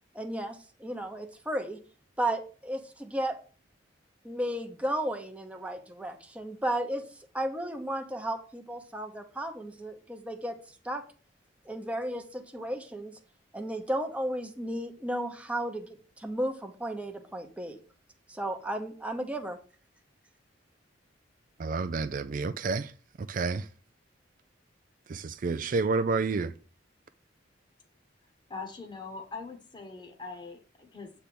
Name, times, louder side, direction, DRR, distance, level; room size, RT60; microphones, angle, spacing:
voice 1, 0.1-1.8 2.2-3.4 4.2-7.0 7.3-10.6 10.8-11.0 11.7-13.1 13.5-17.8 18.3-19.6, right 1 dB, 5° right, 0.8 m, -34 dB
voice 2, 21.6-22.9 23.2-23.7 25.1-26.5, right 4 dB, 45° right, 0.4 m, -29 dB
voice 3, 28.5-31.1, left 4 dB, 25° left, 1.1 m, -42 dB
8.2 x 3.4 x 5.9 m
head